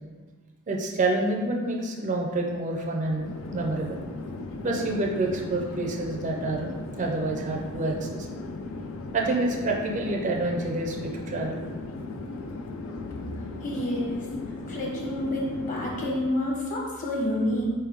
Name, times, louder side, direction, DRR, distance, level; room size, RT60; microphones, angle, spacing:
voice 1, 0.7-4.0 4.6-8.3 9.1-11.6, right 2 dB, 35° right, 0 dB, 0.4 m, -28 dB
Chatter / Fixed-wing aircraft airplane, 3.0-16.4, left 3 dB, 75° left, 0.4 m, -37 dB
voice 2, 13.6-14.3 14.7-17.7, left 1 dB, 40° left, -2 dB, 0.9 m, -28 dB
4.2 x 3.4 x 3.4 m, 1.4 s
head